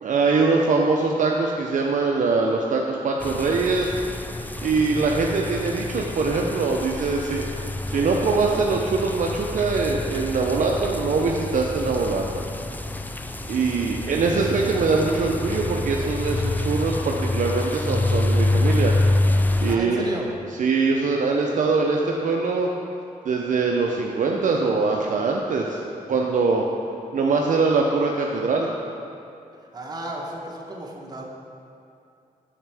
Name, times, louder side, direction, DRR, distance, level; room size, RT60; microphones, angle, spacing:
voice 1, 0.0-3.9 4.6-7.5 7.9-12.4 13.5-18.9 19.6-20.1 20.6-22.7 23.3-26.7 27.1-28.7, right 4 dB, 55° right, 0 dB, 0.5 m, -23 dB
sound 1, 3.2-19.8, left 2 dB, 10° left, 0.3 m, -27 dB
voice 2, 19.7-20.3 29.7-31.2, right 1 dB, 25° right, -2 dB, 1.1 m, -33 dB
6.5 x 5.8 x 3.4 m, 2.6 s
cardioid pair, 65°, 15 cm